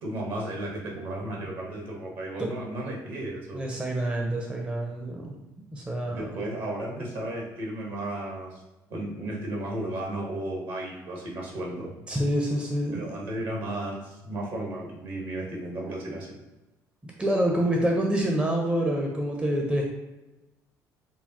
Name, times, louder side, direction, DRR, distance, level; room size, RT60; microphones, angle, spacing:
voice 1, 0.0-3.7 6.1-8.6 8.9-11.9 12.9-16.3, right 1 dB, 55° right, -1 dB, 1.2 m, -34 dB
voice 2, 3.5-5.4 5.7-6.3 12.1-13.3 17.0-19.8, right 1 dB, 10° right, 0 dB, 0.6 m, -27 dB
5.5 x 2.3 x 2.7 m, 1.0 s
figure-of-eight pair, 55°, 10 cm